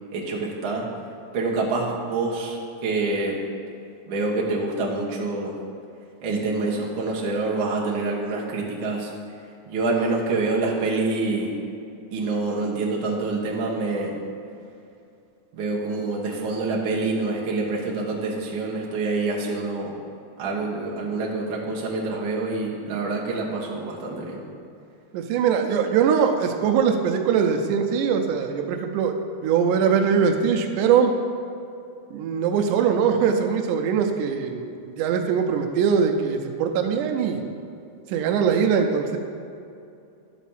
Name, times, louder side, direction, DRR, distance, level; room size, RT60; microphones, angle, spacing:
voice 1, 0.1-0.9 1.3-3.4 4.1-5.5 6.2-9.1 9.7-11.5 12.1-14.1 15.5-19.9 20.4-24.4, right 3 dB, 50° right, -3 dB, 1.7 m, -26 dB
voice 2, 25.1-29.2 29.4-31.1 32.1-37.4 38.1-39.2, right 7 dB, 90° right, 4 dB, 2.2 m, -22 dB
11.0 x 4.1 x 7.1 m, 2.6 s
omnidirectional pair, 3.5 m